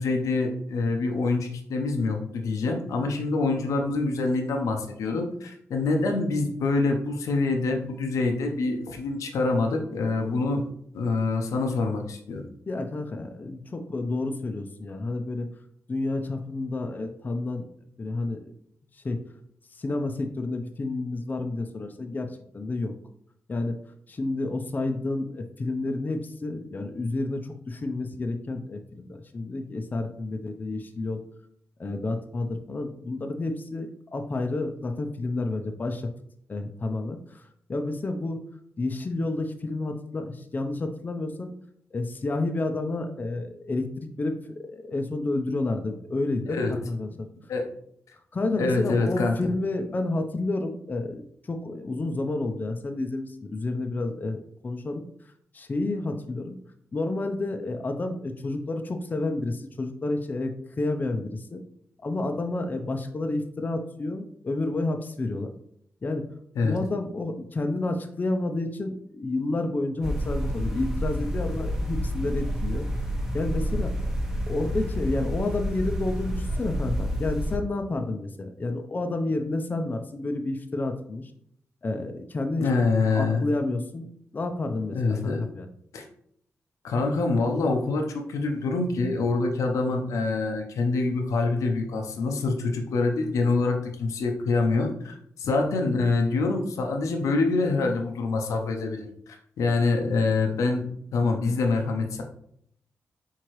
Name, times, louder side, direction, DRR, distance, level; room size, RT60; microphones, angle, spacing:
voice 1, 0.0-10.7 10.9-12.4 46.5-46.7 47.5-47.7 48.6-49.5 66.6-66.8 82.6-83.6 84.9-85.4 85.9-86.0 86.8-100.8 101.1-102.2, left 3 dB, 90° left, 3 dB, 0.7 m, -25 dB
voice 2, 12.7-15.5 15.9-17.7 18.0-18.5 18.9-19.2 19.7-22.9 23.5-23.8 24.1-31.2 31.8-36.1 36.5-37.4 37.7-38.4 38.8-41.5 41.9-47.3 48.3-51.2 51.5-55.0 55.5-56.6 56.9-61.6 62.0-65.5 66.0-66.3 66.6-72.8 73.3-73.9 74.5-81.3 81.8-82.7 83.1-84.1 84.3-85.7, left 2 dB, 35° left, 6 dB, 0.5 m, -30 dB
sound 1, 70.0-77.6, equal, 10° right, 0.8 m, -29 dB
4.5 x 3.7 x 3.0 m, 0.68 s
cardioid pair, 80°, 5 cm